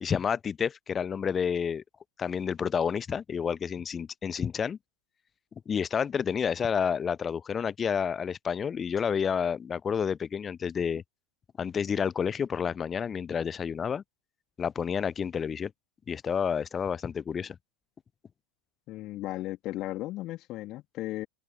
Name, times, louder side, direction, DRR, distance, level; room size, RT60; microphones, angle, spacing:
voice 1, 0.0-1.8 2.2-4.8 5.7-11.0 11.6-14.0 14.6-15.7 16.1-17.6, left 7 dB, 20° left, 0.6 m, -29 dB
voice 2, 18.9-21.3, left 17 dB, 35° left, 3.3 m, -35 dB
figure-of-eight pair, 90°, 0 cm